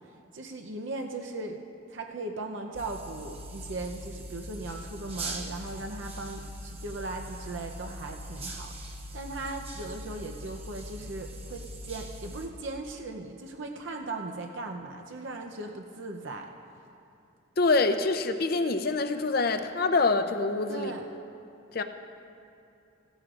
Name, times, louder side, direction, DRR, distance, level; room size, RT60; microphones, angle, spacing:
voice 1, 0.3-1.6 1.9-16.5 20.7-21.1, right 2 dB, 65° right, 3 dB, 0.7 m, -38 dB
sound 1, 2.7-12.5, right 1 dB, 30° right, 1.1 m, -41 dB
voice 2, 17.6-20.9 21.7-21.8, left 3 dB, 45° left, 8 dB, 0.6 m, -25 dB
17.5 x 14.0 x 2.5 m, 2.6 s
head